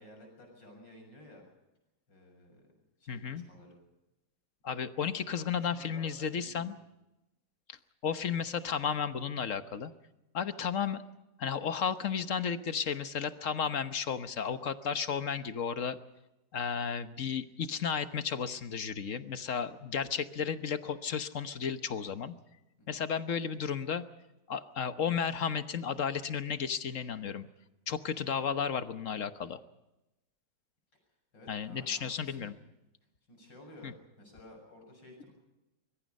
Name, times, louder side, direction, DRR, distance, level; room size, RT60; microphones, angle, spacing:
voice 1, 0.0-1.4 2.1-2.7 3.0-3.8 5.5-6.7 22.8-23.0 31.3-32.5 33.3-35.3, left 1 dB, 80° left, 3 dB, 7.4 m, -54 dB
voice 2, 3.1-3.4 4.6-6.7 7.7-7.8 8.0-9.9 10.3-11.0 11.4-16.0 16.5-22.3 22.9-24.0 24.5-27.5 27.9-29.6 31.5-32.5 33.8-33.9, left 7 dB, 50° left, 11 dB, 1.3 m, -33 dB
24.5 x 22.0 x 5.4 m, 0.95 s
omnidirectional pair, 2.0 m